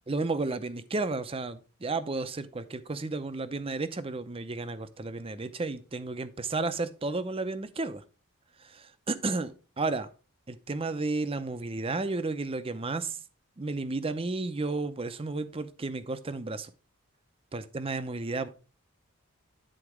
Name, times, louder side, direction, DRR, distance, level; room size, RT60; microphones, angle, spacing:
voice 1, 0.1-8.0 8.6-10.1 10.5-13.2 13.6-16.7 17.5-18.5, right 3 dB, 25° right, 0.6 m, -32 dB
10.0 x 4.0 x 4.7 m
head